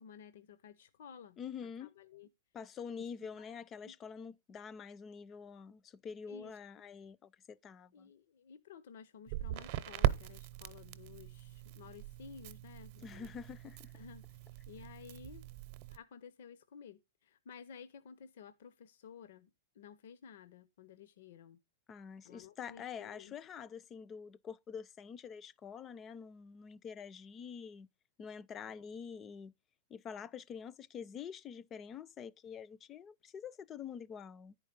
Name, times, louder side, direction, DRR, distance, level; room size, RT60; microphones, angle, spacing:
voice 1, 0.0-1.4 1.8-2.3 3.0-3.5 3.8-3.9 6.3-6.6 7.9-13.3 13.9-15.4 15.9-21.6 22.2-23.3, left 7 dB, 70° left, 0.6 m, -54 dB
voice 2, 1.4-1.9 2.5-8.1 13.0-13.9 21.9-27.9 28.2-29.5 29.9-34.5, left 7 dB, 25° left, 0.4 m, -46 dB
Crackle, 9.3-16.0, right 14 dB, 50° right, 0.7 m, -39 dB
10.0 x 4.6 x 5.2 m
hypercardioid pair, 140°, 0 cm